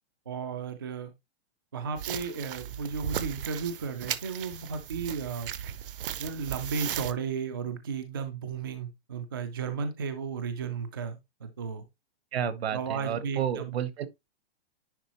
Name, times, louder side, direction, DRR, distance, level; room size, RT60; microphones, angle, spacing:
voice 1, 0.3-1.1 1.7-5.5 6.2-11.8 12.7-13.8, right 5 dB, 20° right, 0.4 m, -34 dB
sound 1, 2.0-7.1, right 10 dB, 55° right, 0.7 m, -36 dB
voice 2, 12.3-14.1, right 9 dB, 70° right, 1.2 m, -31 dB
10.0 x 3.7 x 2.9 m
hypercardioid pair, 180°, 32 cm